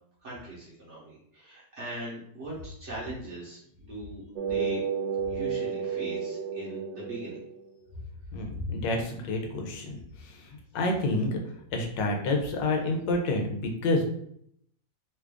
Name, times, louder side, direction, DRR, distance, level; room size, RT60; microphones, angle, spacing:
voice 1, 0.2-4.8 5.3-7.4, right 2 dB, 50° right, -6 dB, 1.0 m, -40 dB
sound 1, 4.4-7.9, right 6 dB, 85° right, 1.3 m, -32 dB
voice 2, 8.3-14.0, left 2 dB, 80° left, 2 dB, 1.4 m, -29 dB
3.3 x 2.4 x 3.4 m, 0.69 s
omnidirectional pair, 2.0 m